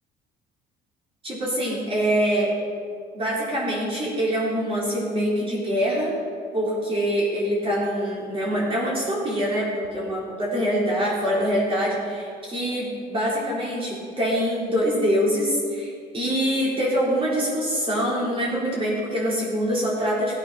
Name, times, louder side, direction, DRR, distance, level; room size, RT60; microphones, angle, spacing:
voice 1, 1.2-2.5 3.1-6.1 6.5-20.4, equal, 35° right, -6 dB, 4.4 m, -24 dB
16.5 x 8.7 x 5.9 m, 2.2 s
cardioid pair, 110°, 17 cm